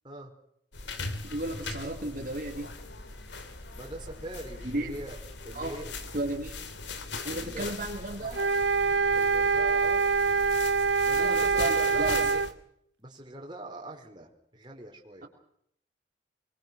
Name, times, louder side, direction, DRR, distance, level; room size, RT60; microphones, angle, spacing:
sound 1, 0.7-12.5, left 3 dB, 85° left, 3.1 m, -40 dB
voice 1, 1.2-2.7 4.6-4.9 5.5-5.7 6.1-6.5 7.2-8.4 11.1-12.3, right 1 dB, 50° right, 0 dB, 3.4 m, -34 dB
voice 2, 3.7-5.1 5.4-5.8 7.3-7.7 8.2-8.5 9.1-10.1 11.0-12.4 13.0-15.3, right 1 dB, 25° right, 1 dB, 5.1 m, -42 dB
sound 2, 8.3-12.5, right 4 dB, 70° right, 0.9 m, -25 dB
25.0 x 22.0 x 6.3 m, 0.71 s
head